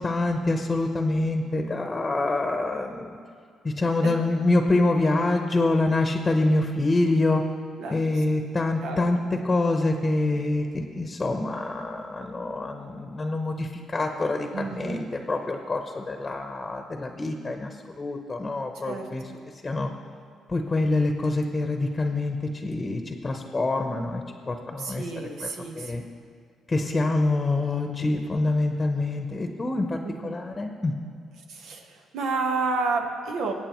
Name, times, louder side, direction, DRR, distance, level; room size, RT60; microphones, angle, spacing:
voice 1, 0.0-3.1 3.6-7.4 7.9-19.3 19.6-19.9 20.5-25.5 25.8-26.0 26.7-30.9, left 2 dB, 25° left, 4 dB, 0.9 m, -26 dB
voice 2, 14.5-15.1 18.8-19.0 24.8-26.0 30.0-30.3 31.5-33.5, right 4 dB, 85° right, 2 dB, 1.3 m, -30 dB
22.0 x 8.5 x 3.1 m, 2.3 s
cardioid pair, 90°, 0 cm